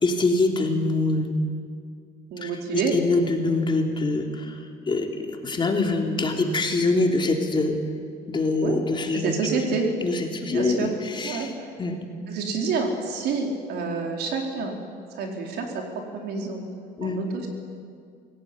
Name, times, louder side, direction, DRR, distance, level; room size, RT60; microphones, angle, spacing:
voice 1, 0.0-1.3 2.4-4.6 4.9-7.8 8.3-9.3 10.0-11.5 11.8-12.0 17.0-17.2, left 3 dB, 30° left, 2 dB, 3.3 m, -24 dB
voice 2, 2.3-2.9 8.6-8.8 9.1-9.9 10.5-10.9 11.2-11.7 12.3-14.8 15.1-15.8 16.1-16.6 17.0-17.5, right 4 dB, 75° right, 2 dB, 4.5 m, -28 dB
23.0 x 17.5 x 9.8 m, 2.2 s
cardioid pair, 110°, 17 cm